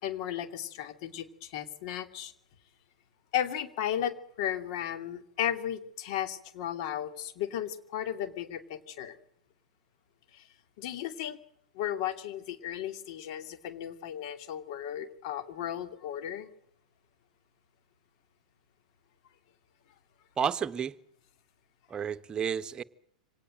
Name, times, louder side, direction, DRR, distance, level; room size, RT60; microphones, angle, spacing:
voice 1, 0.0-2.3 3.3-9.2 10.3-10.5 10.8-11.4 11.7-16.5, left 10 dB, 55° left, 2.7 m, -35 dB
voice 2, 20.4-20.9 21.9-22.8, right 7 dB, 20° right, 1.2 m, -31 dB
25.5 x 18.5 x 7.8 m
figure-of-eight pair, 100°, 4 cm